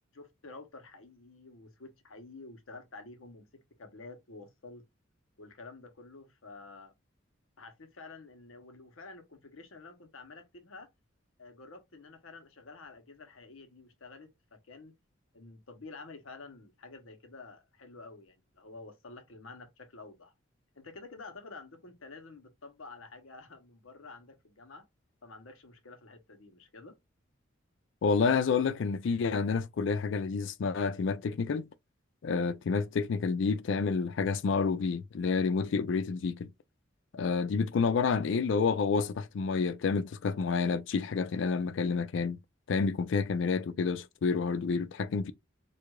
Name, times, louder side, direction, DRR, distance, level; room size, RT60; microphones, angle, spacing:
voice 1, 0.1-4.9 5.4-6.9 7.6-10.9 11.4-14.9 15.3-20.3 20.7-24.9 25.2-27.0, left 3 dB, 85° left, 0.9 m, -50 dB
voice 2, 28.0-31.7 32.2-36.5 37.1-42.4 42.7-45.3, left 5 dB, 65° left, 0.4 m, -29 dB
4.6 x 2.4 x 2.3 m
head